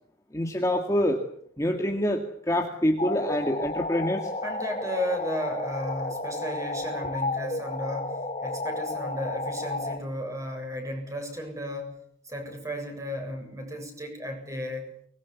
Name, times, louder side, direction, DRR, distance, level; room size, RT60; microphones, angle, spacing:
voice 1, 0.3-1.2 1.6-4.3, equal, 15° left, 3 dB, 2.1 m, -26 dB
sound 1, 3.0-10.0, left 2 dB, 30° left, 2.7 m, -32 dB
voice 2, 4.4-14.9, equal, 15° right, 3 dB, 7.2 m, -34 dB
24.0 x 21.5 x 8.3 m, 0.64 s
head